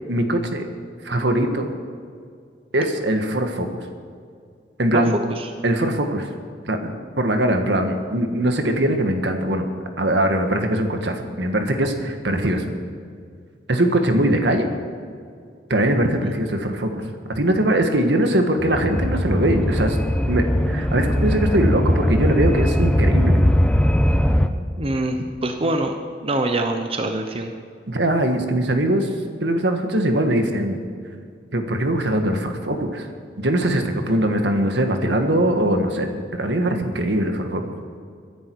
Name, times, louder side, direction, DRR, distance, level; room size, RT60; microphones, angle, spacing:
voice 1, 0.1-0.6 1.0-1.7 2.7-3.7 4.8-5.1 5.6-6.3 6.6-6.9 7.2-9.7 10.0-12.7 13.7-14.7 15.7-17.0 17.3-20.0 20.3-23.4 27.9-29.1 29.4-30.9 31.5-33.1 33.4-37.6, right 1 dB, 75° right, 5 dB, 1.5 m, -21 dB
voice 2, 4.9-5.5 16.2-16.3 24.8-25.2 25.4-26.0 26.2-27.5, right 2 dB, 30° right, 5 dB, 0.9 m, -24 dB
sound 1, 18.6-24.5, equal, 5° left, 0.6 m, -20 dB
23.0 x 10.5 x 4.7 m, 2.2 s
head